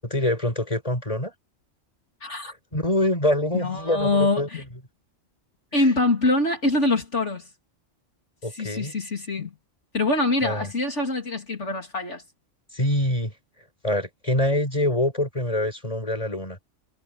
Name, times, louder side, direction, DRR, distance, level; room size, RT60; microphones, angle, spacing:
voice 1, 0.0-1.3 2.7-4.7 5.7-5.9 8.4-8.9 10.4-10.7 12.7-13.3 13.8-16.6, left 1 dB, 30° left, 6.5 m, -25 dB
voice 2, 2.2-2.5 3.6-4.6 5.7-7.4 8.5-9.5 9.9-12.2, left 2 dB, 70° left, 3.4 m, -24 dB
omnidirectional pair, 1.3 m